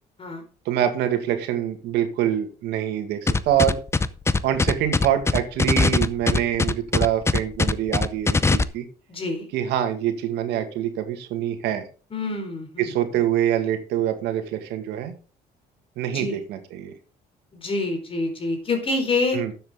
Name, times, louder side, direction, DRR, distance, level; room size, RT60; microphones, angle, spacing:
voice 1, 0.7-3.8 4.4-8.9 9.5-11.8 12.8-15.1 16.0-16.9 19.3-19.5, right 11 dB, 85° right, 7 dB, 2.0 m, -25 dB
sound 1, 3.3-8.6, left 3 dB, 15° left, 0.6 m, -20 dB
voice 2, 9.1-9.5 12.1-12.9 16.1-16.4 17.6-19.4, left 3 dB, 35° left, 4 dB, 4.4 m, -26 dB
12.0 x 7.9 x 3.7 m, 0.36 s
cardioid pair, 110°, 17 cm